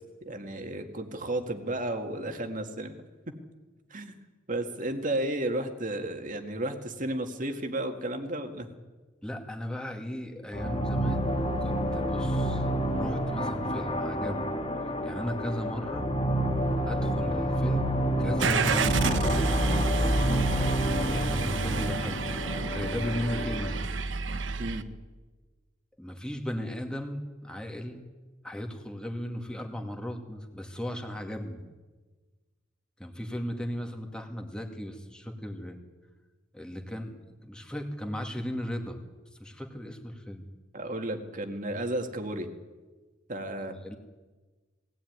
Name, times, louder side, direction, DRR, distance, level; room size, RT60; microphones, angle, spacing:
voice 1, 0.2-2.9 3.3-3.4 3.9-4.1 4.5-8.7 20.2-20.5 24.6-24.8 40.7-42.5 43.3-43.7, right 1 dB, 45° right, 5 dB, 2.1 m, -33 dB
voice 2, 9.2-11.3 11.6-12.6 13.0-14.6 15.0-16.1 16.9-18.9 21.1-23.8 26.0-28.0 28.4-31.6 33.0-35.8 36.5-39.0 39.4-40.5 43.6-44.0, equal, 5° left, 2 dB, 2.4 m, -36 dB
sound 1, 10.5-23.9, equal, 30° left, 1.9 m, -29 dB
Car / Engine starting, 18.4-24.8, right 3 dB, 75° right, 1.0 m, -29 dB
20.5 x 16.5 x 9.6 m, 1.3 s
head